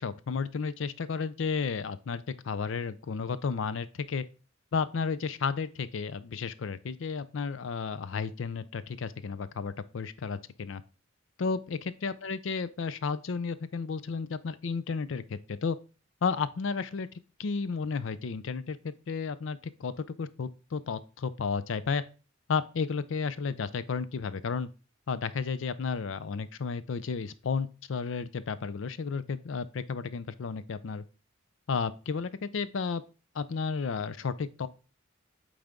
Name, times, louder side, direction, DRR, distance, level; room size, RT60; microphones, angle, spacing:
voice 1, 0.0-4.2 4.7-10.8 11.4-15.8 16.2-17.1 17.4-22.0 22.5-24.7 25.1-31.0 31.7-33.0 33.3-34.7, left 5 dB, 70° left, 0.5 m, -32 dB
8.7 x 3.4 x 3.7 m
head